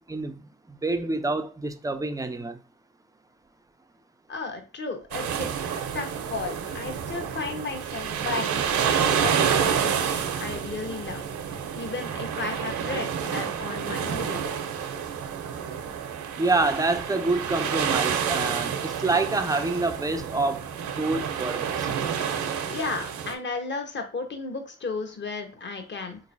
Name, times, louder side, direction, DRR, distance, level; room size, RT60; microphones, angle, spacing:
voice 1, 0.1-2.6 16.4-21.9, right 3 dB, 10° right, 0.5 m, -27 dB
voice 2, 4.3-5.5 5.9-11.2 11.8-14.6 22.7-26.2, left 4 dB, 35° left, 1.1 m, -34 dB
sound 1, 5.1-23.3, right 7 dB, 60° right, 0.8 m, -29 dB
3.8 x 2.9 x 2.6 m
hypercardioid pair, 55°, 32 cm